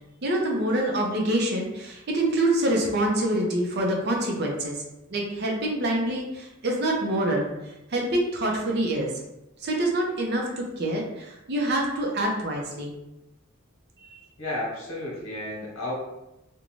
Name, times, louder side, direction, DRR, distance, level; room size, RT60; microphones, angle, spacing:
voice 1, 0.2-4.8 5.1-9.1 9.6-12.9 14.0-14.2, right 1 dB, 50° right, -1 dB, 0.5 m, -26 dB
voice 2, 14.4-15.9, left 1 dB, 75° left, -4 dB, 1.0 m, -32 dB
2.5 x 2.2 x 3.0 m, 0.93 s
head